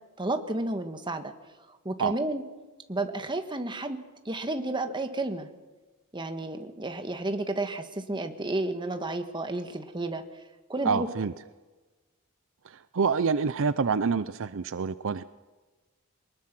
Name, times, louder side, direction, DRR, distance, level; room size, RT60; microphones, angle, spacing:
voice 1, 0.2-1.3 1.8-2.4 2.9-4.0 4.2-5.5 6.1-10.4 10.7-11.1, right 2 dB, 20° right, 7 dB, 1.5 m, -31 dB
voice 2, 10.8-11.3 12.6-15.2, right 5 dB, 65° right, 14 dB, 0.6 m, -27 dB
23.0 x 20.0 x 6.1 m, 1.3 s
head